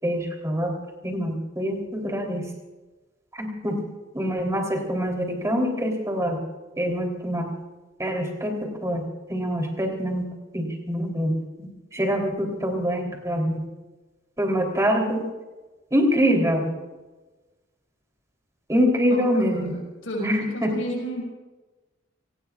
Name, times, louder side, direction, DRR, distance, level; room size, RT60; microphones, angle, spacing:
voice 1, 0.0-0.8 1.0-2.5 3.4-3.8 4.1-6.4 6.8-7.5 8.0-10.3 10.5-13.6 14.4-15.2 15.9-16.7 18.7-19.8 20.2-20.7, equal, 15° right, 2 dB, 3.5 m, -25 dB
voice 2, 20.0-21.2, equal, 85° left, -2 dB, 5.9 m, -31 dB
29.5 x 19.0 x 2.5 m, 1.2 s
head